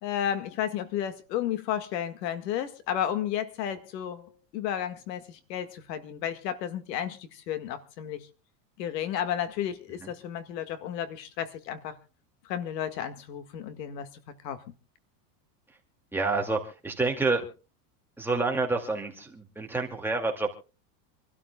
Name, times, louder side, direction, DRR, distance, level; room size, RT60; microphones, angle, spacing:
voice 1, 0.0-8.3 8.8-12.0 12.5-14.6, left 10 dB, 85° left, 1.9 m, -33 dB
voice 2, 16.1-17.4 18.2-20.6, right 3 dB, 5° right, 2.2 m, -28 dB
27.5 x 13.0 x 2.3 m
supercardioid pair, 145°, 48 cm